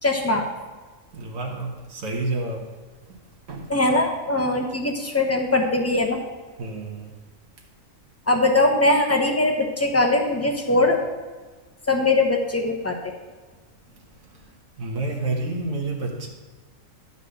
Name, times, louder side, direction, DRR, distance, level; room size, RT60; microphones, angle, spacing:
voice 1, 0.0-0.4 3.7-6.2 8.3-11.0 11.9-13.0, left 2 dB, 15° left, 2 dB, 0.9 m, -21 dB
voice 2, 1.1-2.7 3.1-3.2 3.5-3.7 6.6-7.1 14.3-14.4 14.8-16.3, right 2 dB, 85° right, -1 dB, 1.7 m, -29 dB
12.0 x 4.1 x 6.5 m, 1.3 s
omnidirectional pair, 1.4 m